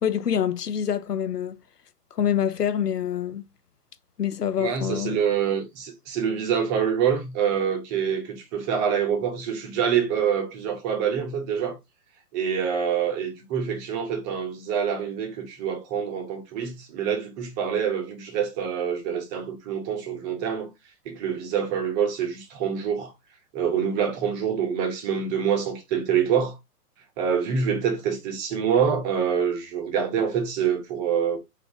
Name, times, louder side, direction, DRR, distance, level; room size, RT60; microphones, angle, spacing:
voice 1, 0.0-1.6 2.1-3.5 4.2-5.2, left 9 dB, 85° left, 0.7 m, -26 dB
voice 2, 4.6-11.8 12.3-20.7 21.0-23.1 23.5-26.6 27.2-31.4, right 7 dB, 25° right, 1.0 m, -26 dB
3.8 x 2.8 x 3.6 m
figure-of-eight pair, 120°, 46 cm